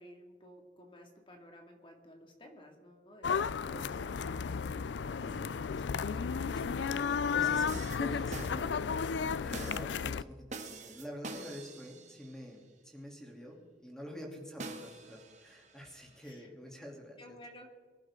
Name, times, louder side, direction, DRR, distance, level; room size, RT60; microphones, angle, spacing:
voice 1, 0.0-3.4 3.7-4.4 16.2-16.5 17.2-17.7, equal, 30° left, 2 dB, 2.3 m, -54 dB
sound 1, 3.2-10.2, left 6 dB, 75° left, 0.4 m, -33 dB
voice 2, 3.6-4.0 5.2-5.9 6.4-8.9 9.4-17.4, equal, 5° left, -1 dB, 3.1 m, -47 dB
sound 2, 7.4-9.0 9.5-9.9 10.5-12.4 14.6-16.2, right 2 dB, 40° right, 1.7 m, -45 dB
24.5 x 11.5 x 3.8 m, 1.5 s
head